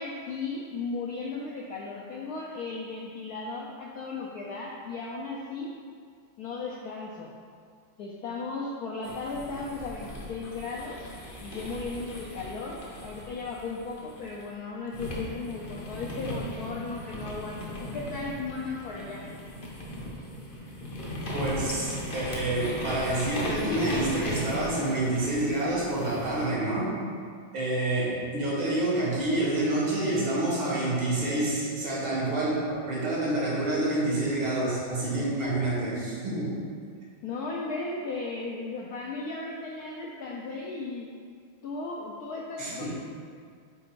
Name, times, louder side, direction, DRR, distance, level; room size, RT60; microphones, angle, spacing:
voice 1, 0.0-5.7 6.4-7.3 8.0-11.1 11.4-19.2 37.2-41.1 41.6-42.9, left 3 dB, 75° left, -3 dB, 0.8 m, -36 dB
sound 1, 9.0-14.4 14.9-26.5, equal, 50° left, 0.6 m, -37 dB
voice 2, 21.3-26.9 27.5-36.6 42.6-42.9, right 2 dB, 85° right, -6 dB, 2.4 m, -28 dB
5.1 x 4.1 x 4.6 m, 2.1 s
omnidirectional pair, 2.2 m